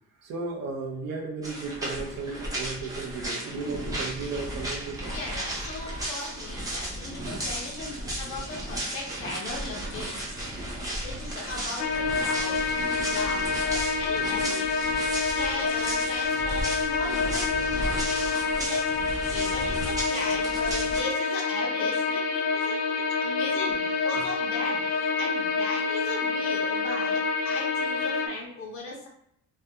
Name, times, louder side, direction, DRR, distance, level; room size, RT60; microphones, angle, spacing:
voice 1, 0.2-5.4 7.6-8.6 10.8-11.4 17.9-18.1 23.8-24.2 25.8-25.9, right 4 dB, 55° right, 0 dB, 0.6 m, -36 dB
sound 1, 1.4-21.0, right 1 dB, 10° right, 0.4 m, -34 dB
voice 2, 5.1-10.2 11.0-12.7 13.1-14.7 15.3-29.1, left 2 dB, 45° left, -1 dB, 0.6 m, -38 dB
sound 2, 11.8-28.3, left 4 dB, 90° left, 0.5 m, -27 dB
2.3 x 2.2 x 2.7 m, 0.71 s
cardioid pair, 170°, 32 cm